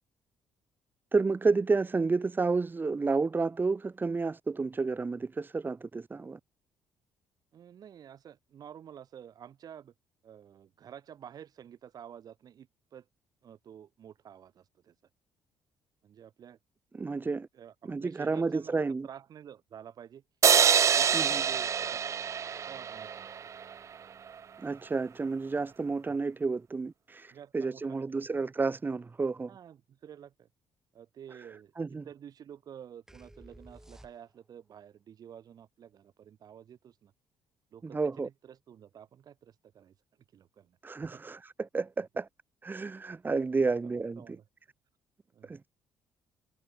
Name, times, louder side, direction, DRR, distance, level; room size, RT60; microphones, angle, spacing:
voice 1, 1.1-6.4 16.9-17.5 17.9-19.1 21.1-21.4 24.6-29.5 31.8-32.0 37.9-38.3 40.8-42.3 42.6-44.2 45.5-45.7, right 4 dB, 25° right, 0.9 m, -30 dB
voice 2, 7.5-9.9 10.2-13.1 13.4-15.0 16.0-16.6 17.5-20.2 20.9-22.1 22.6-23.5 26.0-26.1 27.3-28.2 29.5-30.5 30.9-31.7 32.0-37.1 37.7-39.9 40.3-41.2 43.7-44.5 45.3-45.6, right 9 dB, 60° right, 7.6 m, -50 dB
sound 1, 20.4-23.7, right 7 dB, 40° right, 0.4 m, -25 dB
sound 2, 33.1-34.6, right 1 dB, 5° right, 7.4 m, -54 dB
supercardioid pair, 65°, 8 cm